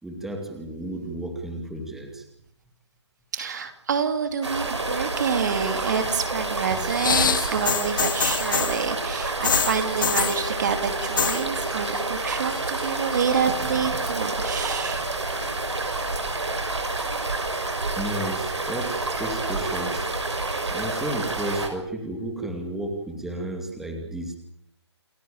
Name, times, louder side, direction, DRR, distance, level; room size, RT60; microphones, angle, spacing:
voice 1, 0.0-2.2 16.6-16.7 18.0-20.1 20.7-24.4, right 1 dB, ahead, 3 dB, 2.5 m, -32 dB
voice 2, 3.3-15.0, right 6 dB, 40° right, 8 dB, 2.4 m, -27 dB
sound 1, 4.4-21.7, right 3 dB, 80° right, 6.4 m, -28 dB
sound 2, 6.9-8.8 9.4-10.4 11.0-11.4 11.7-12.2 12.5-13.3 14.1-14.2, left 7 dB, 45° left, 0.9 m, -25 dB
29.0 x 14.5 x 8.9 m, 0.73 s
figure-of-eight pair, 155°, 14 cm